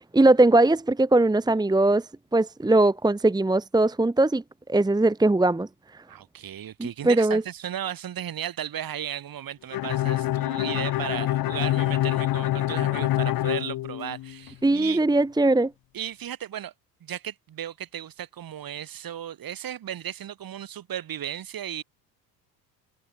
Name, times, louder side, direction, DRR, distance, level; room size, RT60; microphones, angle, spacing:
voice 1, 0.0-4.4 4.7-6.0 6.8-7.4 14.6-15.7, right 2 dB, 10° right, 1.4 m, -20 dB
voice 2, 6.1-15.0 15.9-16.7 17.0-21.8, right 10 dB, 45° right, 4.8 m, -35 dB
Bowed string instrument, 9.7-14.5, left 15 dB, 45° left, 1.1 m, -26 dB
hypercardioid pair, 75°, 50 cm